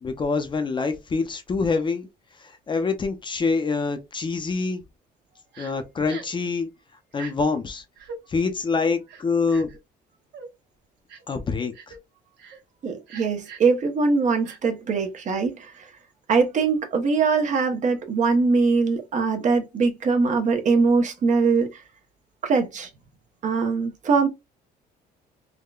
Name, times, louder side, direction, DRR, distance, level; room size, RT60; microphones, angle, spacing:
voice 1, 0.0-2.1 2.4-4.8 5.6-6.7 7.1-7.8 8.3-9.7 11.3-11.9, left 4 dB, 30° left, 0.6 m, -25 dB
Crying sobbing, 5.5-5.7 6.1-6.4 7.1-7.3 8.0-8.2 9.1-9.8 10.3-10.5 11.1-11.3 11.7-12.0 12.4-12.6 13.1-13.7 14.4-14.6, right 5 dB, 80° right, 1.0 m, -41 dB
voice 2, 12.8-15.7 16.3-21.7 22.4-22.9 23.4-24.3, right 4 dB, 45° right, 0.8 m, -22 dB
3.6 x 2.2 x 2.3 m
cardioid pair, 110°, 17 cm